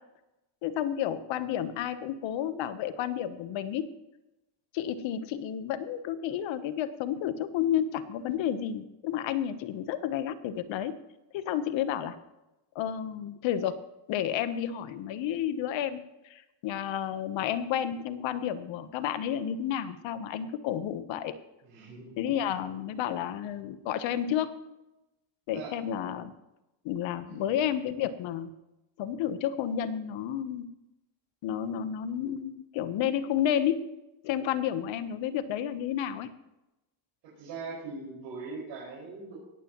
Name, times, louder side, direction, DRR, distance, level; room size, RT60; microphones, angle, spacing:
voice 1, 0.6-3.9 4.7-11.0 11.3-12.2 12.7-13.8 14.1-21.3 22.2-24.5 25.5-26.3 26.8-28.5 29.0-30.7 31.4-33.9 34.2-36.3, left 10 dB, 80° left, 12 dB, 1.1 m, -31 dB
voice 2, 21.6-22.1 22.4-22.6 25.5-25.8 27.3-27.4 37.4-39.4, right 4 dB, 85° right, -6 dB, 5.4 m, -41 dB
18.0 x 14.5 x 3.1 m, 0.95 s
cardioid pair, 145°, 45 cm